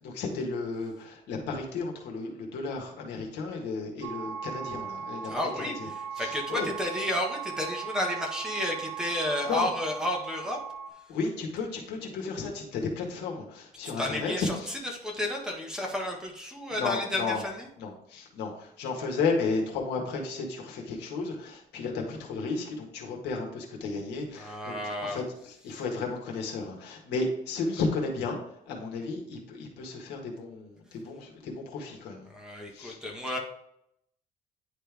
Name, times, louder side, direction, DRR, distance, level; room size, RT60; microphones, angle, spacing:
voice 1, 0.0-5.9 6.2-6.7 9.5-9.7 11.1-14.7 16.7-17.4 17.8-28.4 28.7-32.3 32.7-33.0, left 4 dB, 85° left, 0 dB, 1.7 m, -33 dB
sound 1, 4.0-10.9, right 8 dB, 80° right, 0.9 m, -38 dB
voice 2, 5.2-10.6 13.8-14.5 15.0-17.7 24.4-25.2 32.3-33.4, left 1 dB, 5° right, 0 dB, 1.4 m, -32 dB
10.0 x 3.4 x 3.4 m, 0.77 s
cardioid pair, 110°, 17 cm